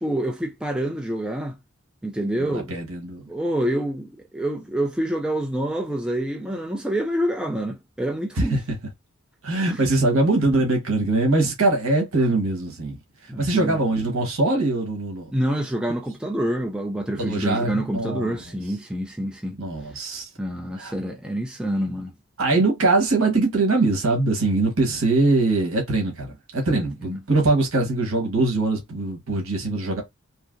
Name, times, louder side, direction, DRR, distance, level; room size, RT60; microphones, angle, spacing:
voice 1, 0.0-1.6 2.0-2.7 3.3-8.6 9.7-9.9 13.3-13.8 15.3-19.6 20.4-22.1 26.8-27.2, right 1 dB, 5° right, 0.3 m, -27 dB
voice 2, 2.4-3.3 8.4-8.6 9.4-13.0 13.2-15.3 17.2-18.4 19.6-20.3 20.8-20.9 22.4-30.0, right 2 dB, 75° right, 1.2 m, -22 dB
3.2 x 2.7 x 2.5 m
head